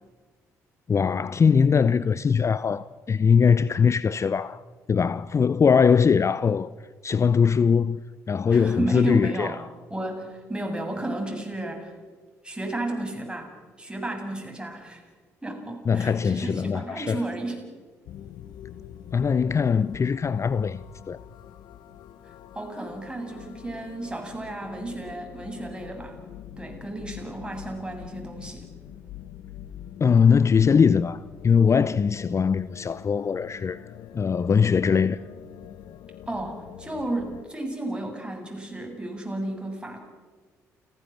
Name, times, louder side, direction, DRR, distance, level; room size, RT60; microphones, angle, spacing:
voice 1, 0.9-4.6 4.9-6.7 7.0-8.0 8.3-9.6 15.9-17.2 19.1-21.2 30.0-33.8 34.1-35.2, left 6 dB, 35° left, 0.6 m, -21 dB
voice 2, 8.5-9.5 9.9-11.9 12.4-15.0 15.4-17.6 22.5-26.2 26.6-28.7 36.3-40.0, right 2 dB, 10° right, 7.4 m, -33 dB
sound 1, 18.1-37.5, left 10 dB, 60° left, 1.0 m, -45 dB
29.0 x 16.5 x 7.5 m
hypercardioid pair, 45°, 8 cm